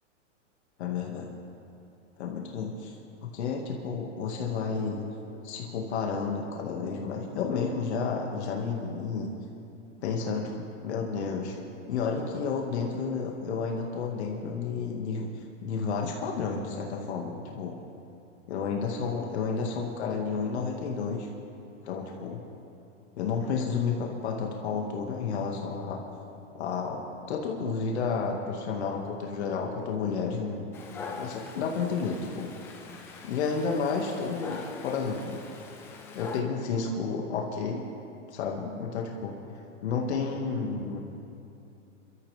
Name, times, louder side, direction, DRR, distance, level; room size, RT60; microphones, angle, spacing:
voice 1, 0.8-1.3 2.2-2.9 3.2-5.0 5.4-9.3 10.0-11.6 11.9-15.3 15.6-17.8 18.5-21.3 21.8-22.4 23.2-26.0 26.5-27.0 27.3-30.7 31.2-32.5 33.0-35.4 36.1-37.9 38.3-39.3 39.8-41.0, left 5 dB, 60° left, 0 dB, 2.0 m, -31 dB
Dog, 30.7-36.4, left 4 dB, 5° left, 0.4 m, -43 dB
29.0 x 13.5 x 3.5 m, 2.7 s
supercardioid pair, 155°, 37 cm